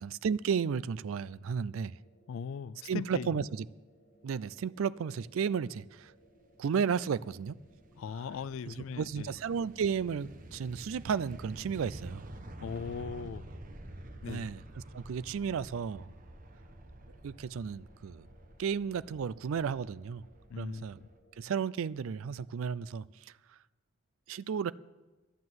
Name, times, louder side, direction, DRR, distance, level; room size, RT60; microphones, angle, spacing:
voice 1, 0.0-1.9 2.9-3.6 4.2-6.1 6.6-7.6 9.0-12.2 14.2-16.1 17.2-18.3 18.6-20.2 20.6-21.0 21.4-23.3 24.3-24.7, right 6 dB, 75° right, 0.4 m, -33 dB
sound 1, 1.9-21.9, equal, 55° left, 3.6 m, -65 dB
voice 2, 2.3-3.5 8.0-9.3 12.6-13.5 14.2-14.5 20.5-21.1, left 6 dB, 75° left, 0.3 m, -39 dB
sound 2, 5.7-21.2, right 1 dB, 40° right, 1.0 m, -50 dB
11.5 x 9.3 x 7.8 m
head